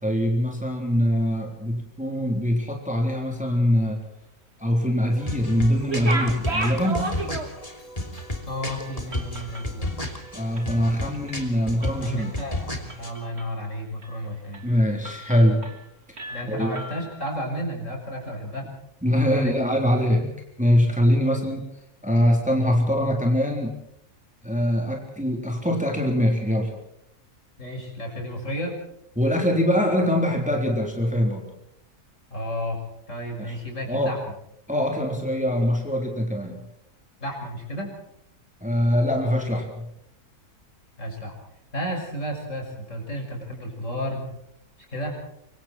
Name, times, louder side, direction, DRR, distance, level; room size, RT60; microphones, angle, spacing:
voice 1, 0.0-4.0 4.6-7.2 10.3-12.4 14.6-15.7 16.5-16.7 19.0-21.6 22.0-23.7 24.4-26.7 29.2-31.5 33.4-33.6 33.9-34.1 34.7-36.6 38.6-39.9, equal, 5° right, 1 dB, 3.7 m, -23 dB
sound 1, 5.1-13.1, left 1 dB, 25° left, 3.1 m, -33 dB
sound 2, 5.8-7.8 8.2-8.3 8.7-10.8 11.1-11.5 11.8-12.5 12.9-13.6 14.0-14.2 14.5-14.7 15.0-15.9 16.2-17.3, right 2 dB, 40° right, 3.4 m, -34 dB
voice 2, 8.5-9.9 12.0-14.6 16.3-18.7 19.2-19.5 21.3-21.4 27.6-28.8 32.3-32.8 33.1-34.2 37.2-37.9 41.0-41.3 41.7-44.3 44.9-45.2, equal, 50° left, 1 dB, 6.9 m, -32 dB
26.0 x 24.0 x 4.5 m, 0.74 s
omnidirectional pair, 1.6 m